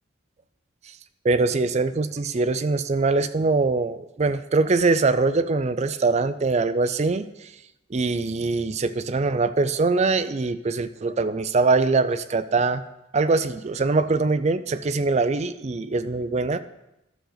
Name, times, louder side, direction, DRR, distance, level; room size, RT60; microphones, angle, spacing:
voice 1, 1.2-7.2 7.9-12.8 13.1-16.6, right 3 dB, 35° right, 12 dB, 0.4 m, -23 dB
13.0 x 6.3 x 3.9 m, 0.90 s
head